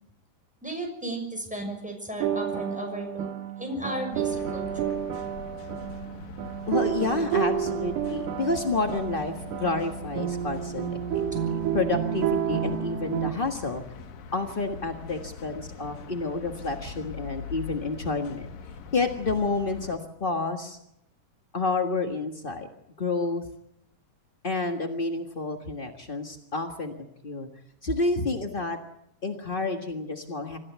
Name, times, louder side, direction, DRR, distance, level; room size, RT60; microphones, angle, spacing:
voice 1, 0.6-3.3 3.6-5.0 11.3-11.4, right 1 dB, ahead, 3 dB, 6.1 m, -35 dB
sound 1, 2.2-13.3, right 9 dB, 70° right, 2.7 m, -30 dB
sound 2, 4.1-20.0, left 6 dB, 85° left, 3.3 m, -42 dB
voice 2, 6.7-11.2 11.7-13.8 14.3-18.5 18.9-20.8 21.5-22.7 23.0-23.4 24.4-27.5 27.8-28.8 29.2-30.6, left 3 dB, 55° left, 4 dB, 0.5 m, -29 dB
26.0 x 15.0 x 8.1 m, 0.77 s
omnidirectional pair, 3.8 m